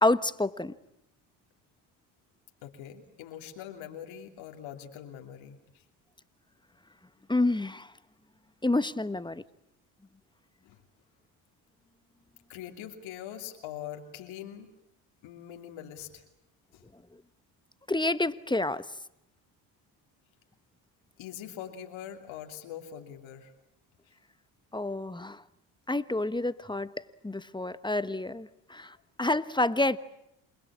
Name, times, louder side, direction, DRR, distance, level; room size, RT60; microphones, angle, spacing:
voice 1, 0.0-0.7 7.3-7.9 8.6-9.4 17.9-18.8 24.7-25.4 25.9-26.9 27.2-30.0, left 2 dB, 10° left, 14 dB, 1.2 m, -28 dB
voice 2, 2.6-5.8 10.6-10.8 12.5-14.7 15.2-16.2 16.7-16.8 21.2-23.5, left 10 dB, 75° left, 3 dB, 3.0 m, -43 dB
28.0 x 21.0 x 8.7 m, 0.82 s
supercardioid pair, 65°, 47 cm